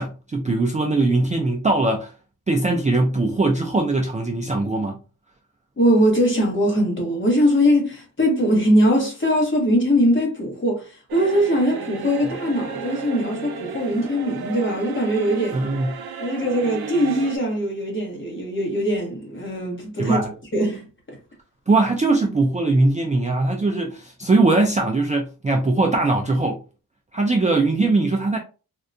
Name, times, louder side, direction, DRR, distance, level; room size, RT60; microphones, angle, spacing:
voice 1, 0.0-2.1 2.5-5.0 15.5-15.9 20.0-20.3 21.7-26.6 27.1-28.4, right 2 dB, 20° right, 0.3 m, -20 dB
voice 2, 5.8-15.6 16.2-20.2 20.5-20.8, equal, 30° left, 1.1 m, -21 dB
sound 1, 11.1-17.4, right 6 dB, 80° right, 0.5 m, -34 dB
3.6 x 2.2 x 2.5 m
wide cardioid pair, 160°, 37 cm